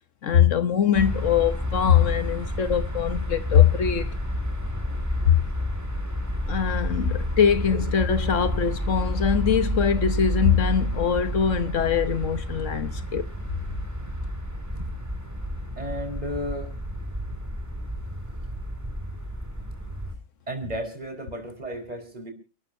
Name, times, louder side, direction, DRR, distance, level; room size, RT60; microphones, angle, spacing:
voice 1, 0.2-4.1 5.2-5.4 6.5-13.3, left 8 dB, 70° left, 1.3 m, -22 dB
sound 1, 0.9-20.1, equal, 15° right, 2.2 m, -30 dB
voice 2, 14.7-15.1 15.8-16.7 20.5-22.3, equal, 30° right, 5.0 m, -34 dB
29.0 x 13.0 x 2.7 m
omnidirectional pair, 1.3 m